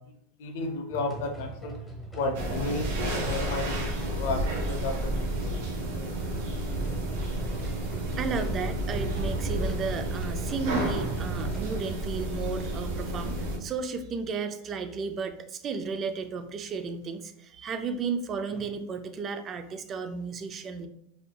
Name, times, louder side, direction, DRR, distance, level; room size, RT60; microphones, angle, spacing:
voice 1, 0.4-1.8 2.2-4.4 4.7-5.6, left 3 dB, 75° left, 5 dB, 0.6 m, -33 dB
sound 1, 0.9-11.8, right 2 dB, 10° left, 0.9 m, -40 dB
sound 2, 2.3-13.6, right 1 dB, 80° right, 0.8 m, -31 dB
voice 2, 8.2-20.9, right 5 dB, 30° right, 9 dB, 0.4 m, -33 dB
4.2 x 2.7 x 2.3 m, 0.72 s
supercardioid pair, 135°, 0 cm